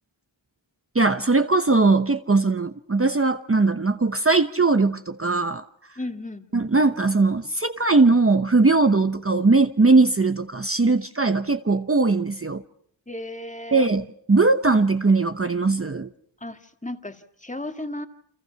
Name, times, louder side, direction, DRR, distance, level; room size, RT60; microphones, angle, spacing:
voice 1, 0.9-5.6 6.5-12.6 13.7-16.1, right 3 dB, 30° right, 1.0 m, -20 dB
voice 2, 6.0-6.5 13.1-13.9 16.4-18.1, left 1 dB, 15° left, 2.0 m, -34 dB
29.5 x 27.0 x 5.8 m
wide cardioid pair, 85°, 45 cm